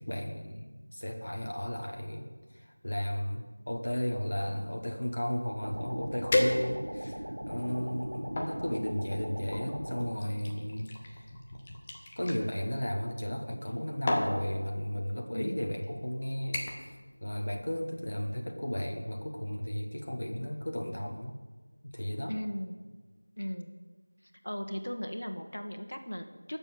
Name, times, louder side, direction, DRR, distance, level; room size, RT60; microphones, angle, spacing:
voice 1, 0.0-11.4 12.2-16.6 17.2-21.4 21.8-22.4, equal, 45° left, 2 dB, 1.2 m, -34 dB
sound 1, 5.6-10.1, right 1 dB, 50° right, 1.1 m, -39 dB
sound 2, 5.7-5.8 6.3-7.1 7.7-8.6 9.5-12.4 13.5-13.7 14.1-14.4 15.3-15.4 15.8-16.1 16.5-16.9 17.3-17.6 18.0-18.1, left 1 dB, 10° left, 0.6 m, -32 dB
voice 2, 15.3-15.7 22.3-22.7 23.4-23.7 24.2-26.6, equal, 80° left, 6 dB, 1.5 m, -37 dB
12.0 x 7.0 x 7.7 m, 1.3 s
figure-of-eight pair, 180°, 0 cm